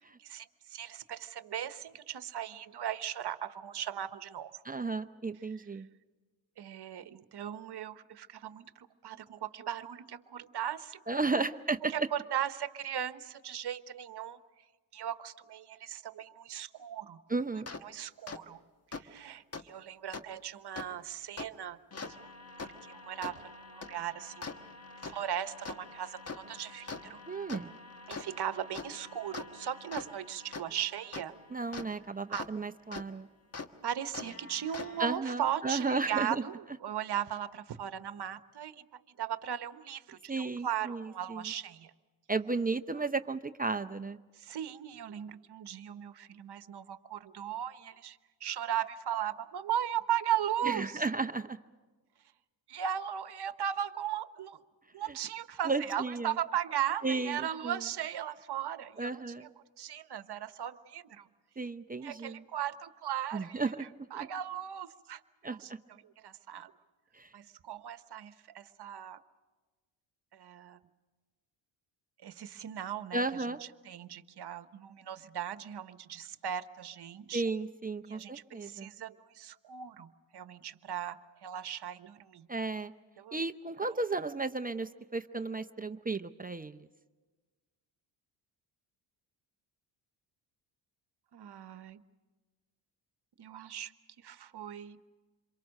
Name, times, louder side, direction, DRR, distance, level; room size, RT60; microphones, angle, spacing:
voice 1, 0.2-4.6 6.6-11.5 11.8-14.4 14.9-17.2 17.8-18.6 18.9-21.8 22.2-22.3 22.6-24.5 25.0-27.2 28.1-31.4 32.3-32.5 33.8-36.5 36.8-41.9 44.4-51.0 52.7-54.6 54.9-59.1 59.4-59.5 59.8-61.3 62.0-63.6 64.1-65.7 66.2-66.7 67.3-69.2 70.3-70.8 72.2-73.2 73.8-77.4 78.0-82.5 83.2-83.4 91.3-92.0 93.4-93.9 94.2-95.0, right 10 dB, 55° right, 12 dB, 1.2 m, -37 dB
voice 2, 4.6-5.9 11.1-11.9 17.3-17.7 27.3-27.7 31.5-33.3 35.0-36.4 40.3-41.5 42.3-44.2 50.6-51.6 55.1-55.2 55.7-56.3 57.0-57.8 59.0-59.5 61.6-62.4 63.3-63.9 64.1-64.3 65.4-65.8 67.1-67.3 73.1-73.6 77.3-78.9 82.5-82.9 83.3-86.9, right 3 dB, 20° right, 8 dB, 0.6 m, -34 dB
sound 1, 17.7-17.8 18.3-18.4 18.9-19.0 19.5-19.6 20.1-20.2 20.8-20.9 21.4-21.5 21.9-32.5 32.9-33.0 33.5-33.7 34.1-35.2, left 4 dB, 30° left, 1.4 m, -44 dB
27.5 x 23.0 x 6.5 m, 1.3 s
cardioid pair, 80°, 48 cm